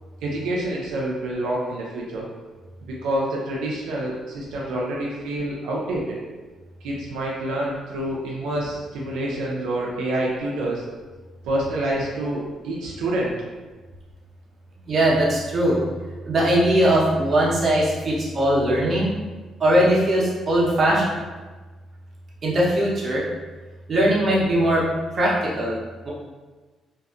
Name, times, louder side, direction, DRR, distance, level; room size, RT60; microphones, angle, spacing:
voice 1, 0.2-2.3 3.0-6.2 6.8-10.8 11.4-13.3, right 1 dB, 90° right, -4 dB, 0.4 m, -27 dB
voice 2, 14.9-15.8 16.3-19.2 19.6-21.2 22.4-23.2 23.9-24.8 25.1-25.8 26.0-26.1, right 1 dB, 45° right, -5 dB, 0.8 m, -20 dB
2.5 x 2.5 x 2.4 m, 1.3 s
cardioid pair, 90°, 0 cm